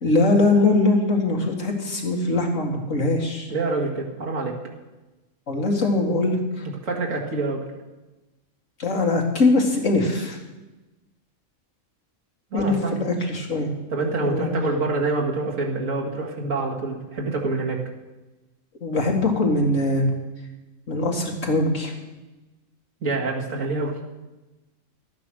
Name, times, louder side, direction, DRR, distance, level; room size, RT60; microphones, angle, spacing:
voice 1, 0.0-3.5 5.5-6.6 8.8-10.4 12.5-13.7 14.2-14.5 18.8-20.1 20.9-21.9, left 2 dB, 75° left, 1 dB, 2.5 m, -22 dB
voice 2, 3.5-4.6 6.8-7.6 12.5-13.0 13.9-17.8 23.0-23.9, right 3 dB, 85° right, -1 dB, 2.4 m, -26 dB
13.0 x 9.2 x 6.3 m, 1.1 s
omnidirectional pair, 1.3 m